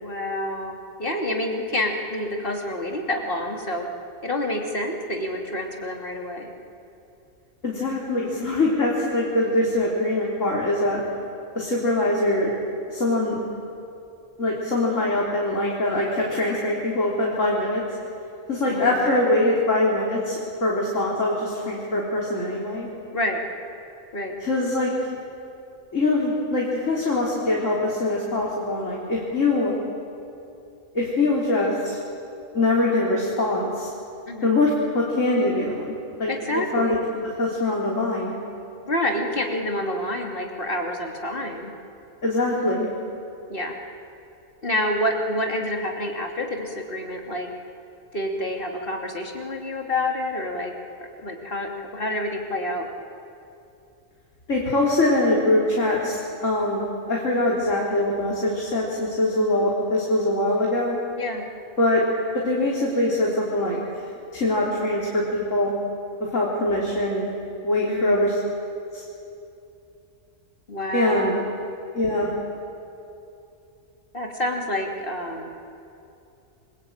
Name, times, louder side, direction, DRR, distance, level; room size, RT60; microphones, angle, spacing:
voice 1, 0.0-3.8 4.2-6.5 18.6-19.4 23.1-23.4 24.1-24.3 34.3-34.5 36.3-37.1 38.9-41.7 43.5-43.8 44.6-47.5 48.1-50.7 51.2-52.9 61.2-61.5 67.9-68.3 70.7-71.5 74.1-75.5, left 1 dB, 40° left, 1 dB, 3.1 m, -28 dB
voice 2, 7.6-11.0 11.6-12.5 12.9-13.4 14.4-17.8 18.5-22.9 24.4-24.9 25.9-29.7 30.9-32.0 32.5-33.9 34.4-35.9 36.2-37.0 37.4-38.4 42.2-42.9 54.5-61.0 61.8-62.0 62.3-63.8 64.3-65.7 66.3-67.3 67.6-68.4 68.9-69.0 70.9-71.3 71.9-72.3, left 2 dB, 65° left, -4 dB, 4.1 m, -23 dB
28.5 x 23.0 x 8.8 m, 2.7 s
omnidirectional pair, 1.4 m